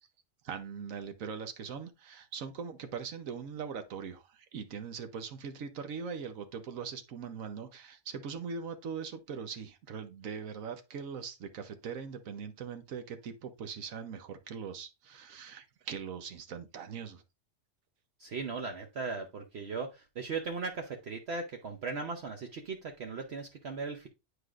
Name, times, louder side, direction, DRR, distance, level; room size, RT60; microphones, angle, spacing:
voice 1, 0.4-17.2, right 6 dB, 85° right, 1.3 m, -41 dB
voice 2, 18.2-24.1, right 4 dB, 55° right, 1.0 m, -38 dB
9.6 x 4.8 x 2.4 m
omnidirectional pair, 1.4 m